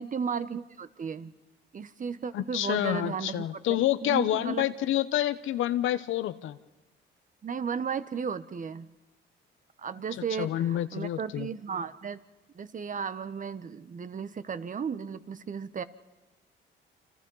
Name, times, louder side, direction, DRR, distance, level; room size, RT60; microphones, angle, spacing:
voice 1, 0.0-1.3 1.7-3.4 4.1-4.6 7.4-8.9 9.8-12.2 12.5-15.8, right 6 dB, 40° right, 13 dB, 1.2 m, -34 dB
voice 2, 2.3-6.6 10.4-11.5, left 12 dB, 80° left, 13 dB, 1.0 m, -28 dB
28.5 x 26.0 x 5.6 m, 1.1 s
cardioid pair, 90°, 20 cm